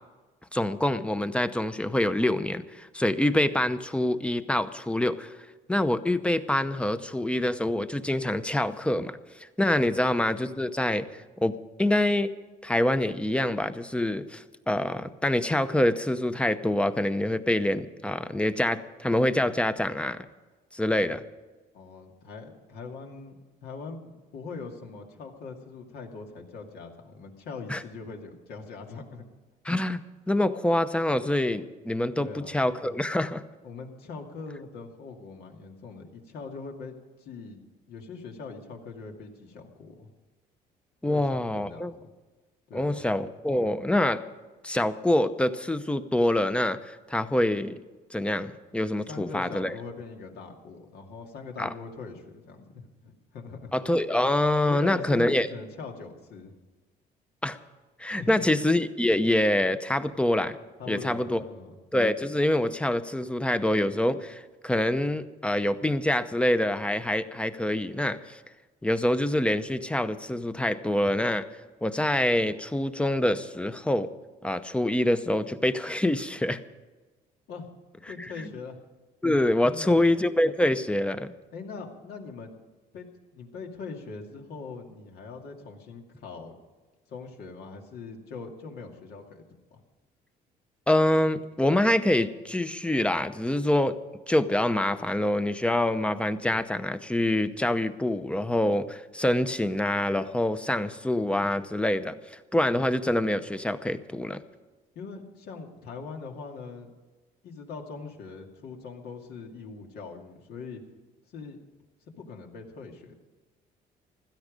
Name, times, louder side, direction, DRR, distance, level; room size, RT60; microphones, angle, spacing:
voice 1, 0.5-5.4 5.7-12.3 12.6-20.2 20.7-21.2 27.7-27.8 29.6-30.0 30.3-33.4 41.0-41.9 42.7-44.2 44.6-47.8 48.1-49.7 51.6-51.7 53.7-55.5 57.4-57.6 58.0-60.6 60.9-61.4 61.9-68.4 68.8-71.5 71.8-74.1 74.4-76.6 79.2-81.3 90.9-94.0 94.3-104.4, left 1 dB, 5° left, 12 dB, 0.8 m, -26 dB
voice 2, 21.7-29.3 32.2-32.5 33.6-37.6 37.9-40.1 41.1-42.1 42.7-43.0 49.1-53.7 54.7-56.5 58.2-58.5 60.1-60.2 60.8-61.8 77.5-77.7 78.1-78.8 79.6-80.1 81.5-82.5 82.9-86.6 87.1-89.8 104.9-106.9 107.4-110.8 111.3-111.6 112.2-113.1, left 4 dB, 70° left, 2 dB, 2.4 m, -42 dB
16.0 x 13.0 x 5.2 m, 1.3 s
cardioid pair, 110°, 17 cm